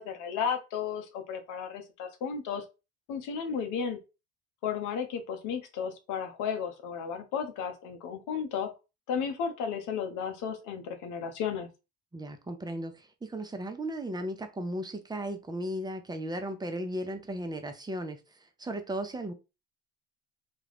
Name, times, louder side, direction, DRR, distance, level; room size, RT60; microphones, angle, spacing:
voice 1, 0.0-2.6 3.1-4.0 4.6-8.7 9.1-11.7, left 7 dB, 65° left, 0.8 m, -33 dB
voice 2, 12.1-18.2 18.6-19.3, right 1 dB, 10° right, 0.6 m, -36 dB
2.4 x 2.2 x 3.4 m
hypercardioid pair, 60°, 33 cm